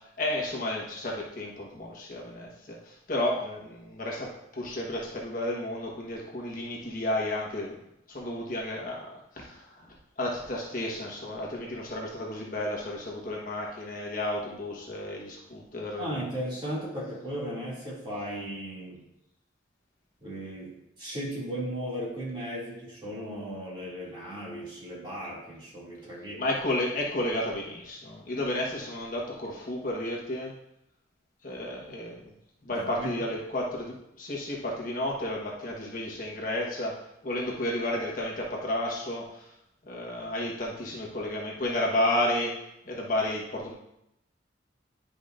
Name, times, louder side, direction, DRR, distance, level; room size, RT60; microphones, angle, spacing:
voice 1, 0.2-7.8 8.1-9.9 10.2-16.3 26.4-30.5 31.4-32.3 32.6-37.0 37.2-39.4 39.8-42.5 42.9-43.7, left 1 dB, 45° left, -2 dB, 1.3 m, -32 dB
voice 2, 16.0-19.0 20.2-26.5 32.7-33.1, equal, 25° right, -7 dB, 2.4 m, -36 dB
10.5 x 5.0 x 2.5 m, 0.83 s
head